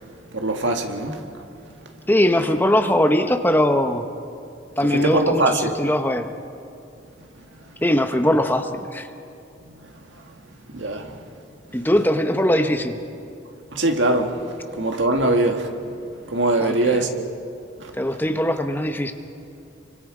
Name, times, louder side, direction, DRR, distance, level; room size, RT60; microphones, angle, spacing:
voice 1, 0.3-1.3 1.8-1.9 4.8-5.7 9.6-10.2 10.7-11.3 13.7-15.7 16.2-17.2 17.8-18.0, right 2 dB, 80° right, 1.9 m, -23 dB
voice 2, 2.1-4.0 4.8-6.3 7.8-9.1 11.7-13.0 16.6-16.8 18.0-19.1, left 1 dB, 10° left, 0.9 m, -20 dB
30.0 x 24.0 x 5.0 m
head